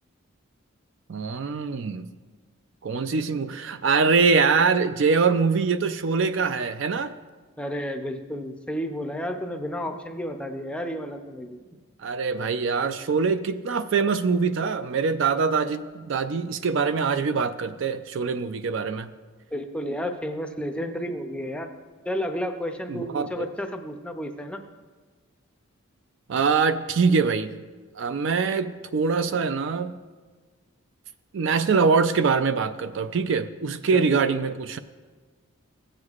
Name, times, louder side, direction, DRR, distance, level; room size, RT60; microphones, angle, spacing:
voice 1, 1.1-2.1 2.8-7.1 12.0-19.1 22.9-23.5 26.3-27.5 28.0-30.0 31.3-34.8, right 5 dB, 60° right, 11 dB, 0.4 m, -23 dB
voice 2, 7.6-11.6 19.5-21.7 22.0-24.6 33.9-34.4, equal, 5° left, 4 dB, 0.5 m, -32 dB
16.5 x 7.9 x 2.4 m, 1.4 s
head